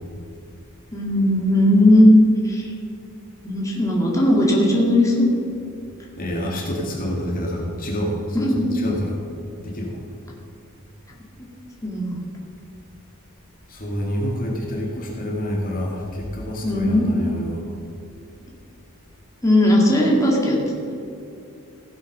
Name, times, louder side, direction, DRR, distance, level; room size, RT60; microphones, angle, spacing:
voice 1, 0.9-2.1 2.4-2.7 3.4-5.3 8.3-8.7 11.4-11.5 11.8-12.2 16.6-17.1 19.4-20.6, left 1 dB, 15° left, -3 dB, 2.2 m, -17 dB
voice 2, 6.2-9.2 9.6-10.0 13.7-17.6, equal, 40° left, -1 dB, 2.1 m, -27 dB
16.0 x 8.1 x 5.4 m, 2.7 s
head